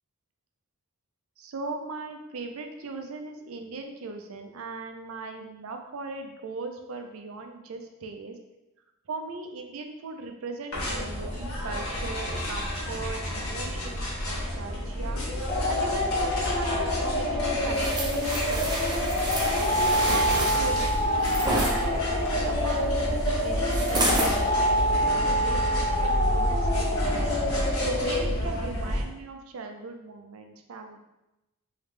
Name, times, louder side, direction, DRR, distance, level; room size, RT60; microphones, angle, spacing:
voice 1, 1.4-8.3 9.1-15.2 15.7-18.8 19.4-22.9 23.2-27.2 27.8-31.0, right 3 dB, 75° right, 5 dB, 0.5 m, -38 dB
sound 1, 10.7-29.0, equal, 70° left, 1.1 m, -30 dB
sound 2, 15.5-28.3, left 1 dB, 30° left, 0.4 m, -27 dB
sound 3, 17.7-21.7 23.7-24.3 24.9-25.0, right 2 dB, 20° right, 0.6 m, -29 dB
3.3 x 2.8 x 3.2 m, 0.94 s
head